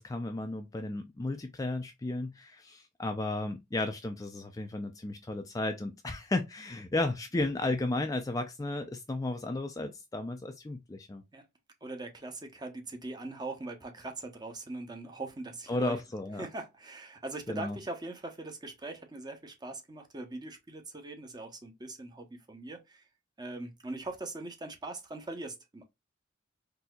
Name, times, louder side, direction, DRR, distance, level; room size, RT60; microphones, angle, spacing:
voice 1, 0.0-11.2 15.7-16.4 17.5-17.8, left 2 dB, 15° left, 0.3 m, -34 dB
voice 2, 11.8-16.0 16.4-23.0 23.4-25.8, right 2 dB, 20° right, 0.7 m, -41 dB
4.1 x 2.7 x 2.2 m
head